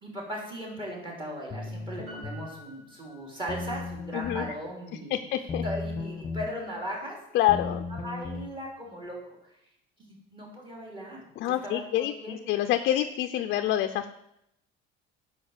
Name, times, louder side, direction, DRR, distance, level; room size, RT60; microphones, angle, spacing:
voice 1, 0.0-5.2 5.6-7.6 8.0-9.2 10.0-11.3 11.6-12.4, equal, 25° right, -3 dB, 3.3 m, -38 dB
sound 1, 1.5-2.5 3.5-4.5 5.5-6.5 7.5-8.5, left 3 dB, 20° left, 1.1 m, -35 dB
Piano, 2.1-3.9 4.2-4.3, equal, 80° right, 4.2 m, -50 dB
voice 2, 4.1-4.5 4.9-5.6 7.3-7.8 11.4-14.1, left 13 dB, 50° left, 7 dB, 0.6 m, -27 dB
11.5 x 5.4 x 7.2 m, 0.81 s
cardioid pair, 155°, 21 cm